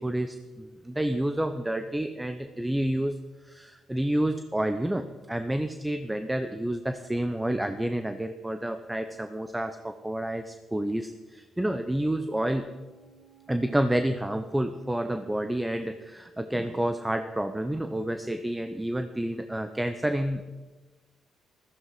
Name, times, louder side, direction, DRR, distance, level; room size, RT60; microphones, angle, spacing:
voice 1, 0.0-3.2 3.4-12.7 13.5-20.4, right 1 dB, 10° right, 8 dB, 0.8 m, -29 dB
sound 1, 12.5-16.3 16.7-16.8, right 7 dB, 30° right, 5.7 m, -59 dB
14.5 x 14.0 x 4.9 m, 1.2 s
cardioid pair, 90°, 0 cm